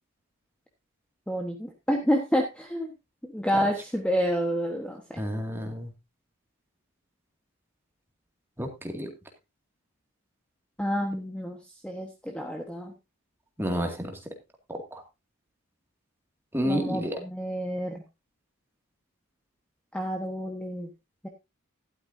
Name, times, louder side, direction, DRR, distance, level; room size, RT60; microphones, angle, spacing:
voice 1, 1.3-2.9 3.2-5.2 10.8-11.6 11.8-12.9 16.6-18.0 19.9-20.9 21.2-21.3, equal, 5° left, 3 dB, 1.2 m, -29 dB
voice 2, 5.2-5.9 8.6-9.1 13.6-14.3 14.7-15.0 16.5-17.2, equal, 10° right, 3 dB, 2.1 m, -30 dB
12.5 x 12.0 x 2.7 m, 0.23 s
head